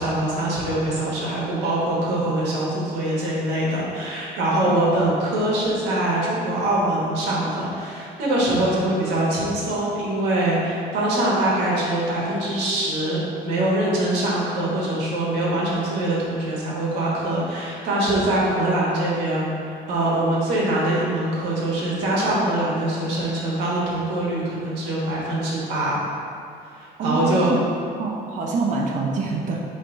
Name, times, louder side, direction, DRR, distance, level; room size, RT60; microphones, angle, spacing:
voice 1, 0.0-19.5 19.9-26.0 26.8-27.5, right 1 dB, 85° right, -5 dB, 1.3 m, -23 dB
voice 2, 4.6-5.0 8.7-8.8 27.0-27.7 28.0-29.6, right 3 dB, 50° right, -1 dB, 0.5 m, -26 dB
3.8 x 3.1 x 4.5 m, 2.5 s
cardioid pair, 110°, 17 cm